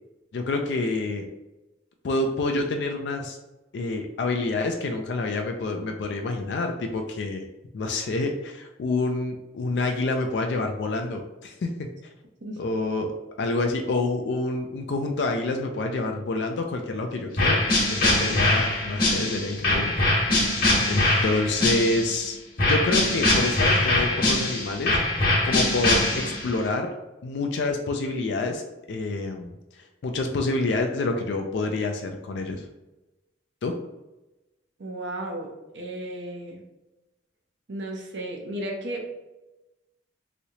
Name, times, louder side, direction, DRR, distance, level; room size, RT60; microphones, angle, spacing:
voice 1, 0.3-1.3 2.0-3.4 3.7-7.4 7.7-11.9 12.6-13.1 13.4-20.2 20.8-25.0 25.4-26.9 27.2-28.6 28.9-29.5 30.0-32.7 33.6-33.8, left 2 dB, 70° left, 4 dB, 0.4 m, -27 dB
sound 1, 17.4-22.2 22.6-26.6, left 1 dB, 55° left, 1.2 m, -22 dB
voice 2, 34.8-35.5 35.7-36.6 37.7-39.1, right 1 dB, 85° right, 1 dB, 0.7 m, -34 dB
3.1 x 2.8 x 2.7 m, 1.0 s
head